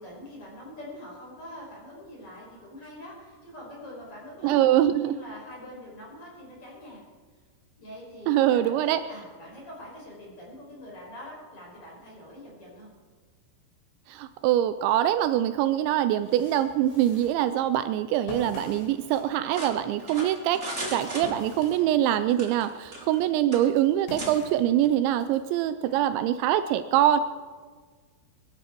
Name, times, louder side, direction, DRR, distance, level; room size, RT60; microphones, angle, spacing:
voice 1, 0.0-7.0 7.8-12.9 25.9-26.3, left 1 dB, 30° left, -3 dB, 5.6 m, -44 dB
voice 2, 4.4-5.2 8.3-9.0 14.1-20.6 20.9-27.2, right 12 dB, 85° right, 11 dB, 2.8 m, -24 dB
sound 1, 16.0-22.3 22.8-25.4, left 2 dB, 80° left, 5.5 m, -45 dB
sound 2, 19.5-21.8 22.3-23.2 23.5-23.7 24.2-24.3, right 1 dB, 20° right, 1.9 m, -36 dB
23.0 x 12.5 x 4.5 m, 1.5 s
omnidirectional pair, 5.4 m